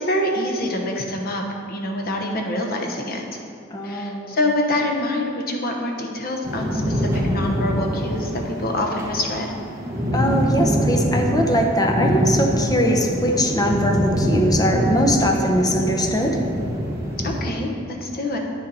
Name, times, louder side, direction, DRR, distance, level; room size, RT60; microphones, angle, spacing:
voice 1, 0.0-3.4 3.8-9.5 17.2-18.4, left 1 dB, 50° left, 2 dB, 1.1 m, -26 dB
voice 2, 3.7-4.3 10.1-16.4, equal, 20° left, 2 dB, 0.7 m, -21 dB
sound 1, 6.4-17.4, equal, 15° right, 1.5 m, -24 dB
9.1 x 6.8 x 4.1 m, 2.5 s
head